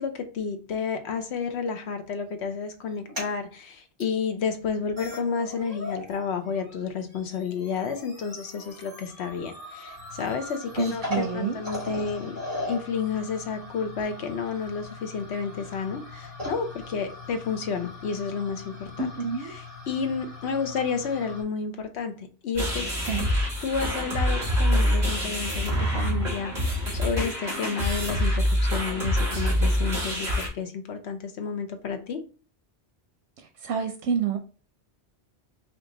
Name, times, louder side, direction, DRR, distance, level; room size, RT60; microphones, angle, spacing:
voice 1, 0.0-12.4 12.7-19.1 19.4-22.9 23.6-32.2, left 5 dB, 75° left, 1.0 m, -31 dB
sound 1, 2.9-3.3 4.0-4.1 4.7-4.8 5.0-6.2 6.5-21.4, left 2 dB, 25° right, 2.1 m, -39 dB
voice 2, 10.8-11.5 19.0-19.5 23.1-23.3 33.6-34.4, right 6 dB, 90° right, 0.9 m, -28 dB
sound 2, 22.5-30.5, equal, 40° right, 2.0 m, -25 dB
4.6 x 2.6 x 3.7 m
omnidirectional pair, 1.1 m